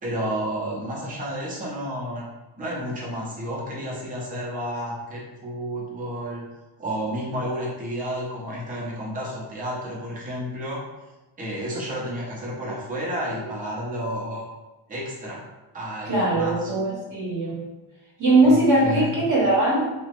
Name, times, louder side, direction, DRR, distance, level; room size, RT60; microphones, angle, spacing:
voice 1, 0.0-2.3 2.6-6.5 6.8-10.8 11.4-14.5 14.9-15.4 15.7-16.7 18.4-19.2, equal, 20° right, -4 dB, 0.5 m, -31 dB
voice 2, 16.0-17.6 18.2-19.8, right 2 dB, 40° right, -5 dB, 0.9 m, -20 dB
2.9 x 2.1 x 2.9 m, 1.1 s
wide cardioid pair, 160°, 50 cm